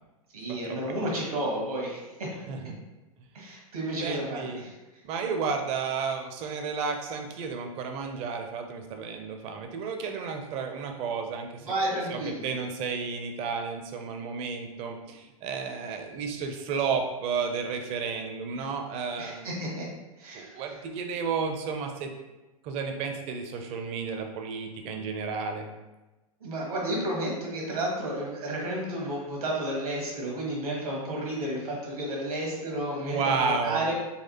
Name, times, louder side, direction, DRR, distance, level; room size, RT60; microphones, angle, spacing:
voice 1, 0.3-2.3 3.3-4.8 11.6-12.5 19.2-19.9 20.2-20.6 26.4-33.9, right 1 dB, 70° right, -2 dB, 1.3 m, -32 dB
voice 2, 4.0-4.6 5.0-11.7 12.1-19.5 20.3-22.1 22.6-25.7 33.0-33.9, right 5 dB, 30° right, 4 dB, 0.5 m, -32 dB
4.1 x 2.4 x 2.7 m, 1.1 s
figure-of-eight pair, 105°, 19 cm